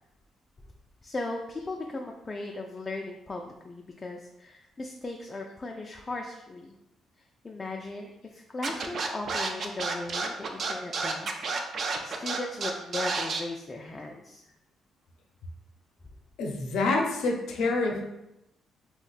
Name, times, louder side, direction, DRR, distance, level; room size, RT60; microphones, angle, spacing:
voice 1, 1.0-6.7 7.4-14.4, left 2 dB, 25° left, 1 dB, 0.3 m, -37 dB
Scratching (performance technique), 8.6-13.4, right 4 dB, 55° right, 0.4 m, -30 dB
voice 2, 16.4-18.0, left 3 dB, 80° left, 1 dB, 0.5 m, -27 dB
2.5 x 2.1 x 3.9 m, 0.90 s
cardioid pair, 90°, 0 cm